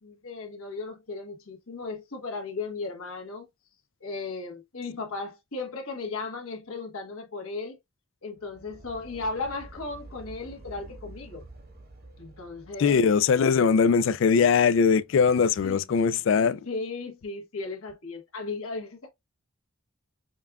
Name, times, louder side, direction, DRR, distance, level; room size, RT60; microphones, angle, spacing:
voice 1, 0.0-3.5 4.0-7.8 8.2-11.5 12.2-13.0 15.6-15.8 16.4-19.1, left 3 dB, 85° left, 1.2 m, -36 dB
sound 1, 8.3-13.5, right 2 dB, 45° right, 1.1 m, -48 dB
voice 2, 12.8-16.6, left 6 dB, 60° left, 0.3 m, -21 dB
5.3 x 2.3 x 2.3 m
head